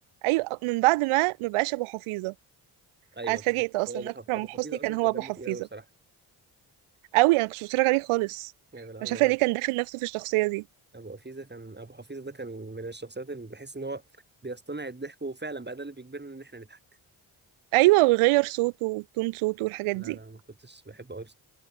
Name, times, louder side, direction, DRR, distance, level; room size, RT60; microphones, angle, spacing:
voice 1, 0.2-2.3 3.3-3.9 4.3-5.6 7.1-8.5 9.0-10.6 17.7-20.2, right 22 dB, 85° right, 1.1 m, -25 dB
voice 2, 3.9-5.8 8.7-9.3 10.9-14.0 14.4-16.8 19.9-21.4, right 2 dB, 20° right, 4.5 m, -39 dB
hypercardioid pair, 45°, 49 cm